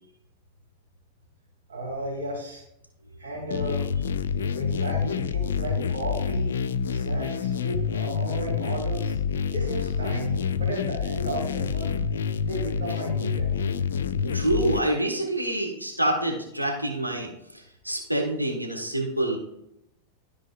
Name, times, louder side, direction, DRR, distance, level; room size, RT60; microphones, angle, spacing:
voice 1, 1.7-2.6 3.2-3.8 4.5-6.5 6.9-9.1 9.5-12.0 12.5-13.7, right 1 dB, 65° right, -4 dB, 2.5 m, -34 dB
sound 1, 3.5-14.8, left 6 dB, 65° left, 0.4 m, -27 dB
voice 2, 14.3-19.4, right 1 dB, 90° right, -1 dB, 1.4 m, -27 dB
12.5 x 4.8 x 2.4 m, 0.80 s
figure-of-eight pair, 90°, 0 cm